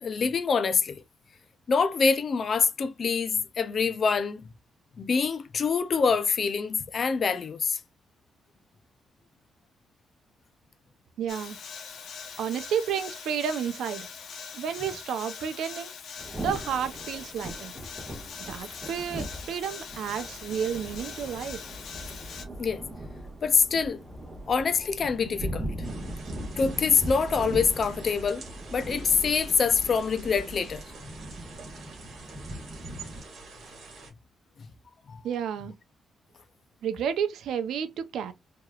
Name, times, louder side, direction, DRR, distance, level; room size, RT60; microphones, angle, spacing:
voice 1, 0.0-1.0 1.7-4.5 5.0-7.8 22.6-22.8 23.4-24.0 24.5-25.6 26.6-28.4 28.7-30.8 35.1-35.2, left 5 dB, 40° left, 0.5 m, -25 dB
voice 2, 11.2-11.6 12.4-14.1 14.5-15.9 16.4-17.7 18.5-21.6 35.2-35.7 36.8-38.3, right 8 dB, 80° right, 0.6 m, -31 dB
sound 1, 11.3-22.4, left 6 dB, 65° left, 1.0 m, -42 dB
Thunder / Rain, 16.2-33.2, right 1 dB, 20° right, 1.7 m, -39 dB
sound 2, 25.8-34.1, right 3 dB, 50° right, 2.3 m, -47 dB
4.7 x 3.0 x 2.4 m
cardioid pair, 150°, 0 cm